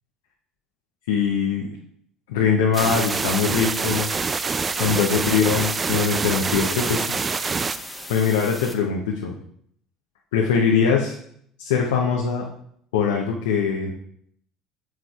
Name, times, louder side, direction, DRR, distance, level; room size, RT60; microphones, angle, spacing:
voice 1, 1.1-1.7 2.3-4.1 4.8-7.1 8.1-9.3 10.3-11.1 11.6-12.4 12.9-13.9, left 6 dB, 75° left, 0 dB, 0.7 m, -22 dB
sound 1, 2.7-8.7, left 1 dB, 5° left, 1.2 m, -38 dB
sound 2, 2.8-7.8, right 4 dB, 30° right, 0.4 m, -26 dB
7.4 x 6.3 x 2.4 m, 0.68 s
hypercardioid pair, 65°, 0 cm